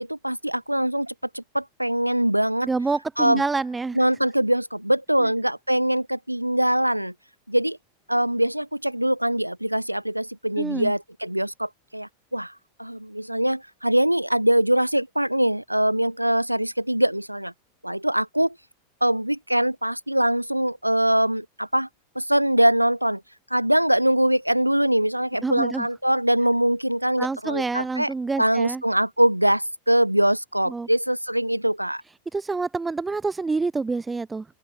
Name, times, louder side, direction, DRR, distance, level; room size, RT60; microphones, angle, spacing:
voice 1, 0.0-2.7 3.2-3.4 3.9-7.1 7.5-7.8 8.1-12.5 12.8-17.5 17.8-18.5 19.0-21.9 22.1-23.2 23.5-28.1 28.4-32.0, right 1 dB, 90° right, 1.2 m, -23 dB
voice 2, 2.6-4.0 5.2-5.3 10.6-10.9 25.4-25.9 27.2-28.8 30.7-30.9 32.3-34.5, right 3 dB, 10° right, 3.9 m, -27 dB
open air
figure-of-eight pair, 90°, 0 cm